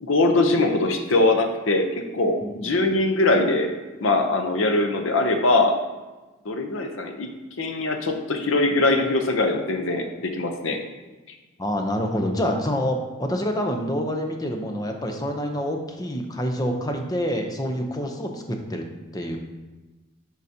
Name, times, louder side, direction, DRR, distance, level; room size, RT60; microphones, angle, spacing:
voice 1, 0.0-3.7 4.0-5.8 6.4-7.3 7.6-10.8, left 2 dB, 70° left, 5 dB, 0.7 m, -22 dB
voice 2, 2.4-2.8 11.6-18.8 19.1-19.4, equal, 20° left, 3 dB, 0.6 m, -27 dB
11.0 x 3.9 x 2.8 m, 1.2 s
head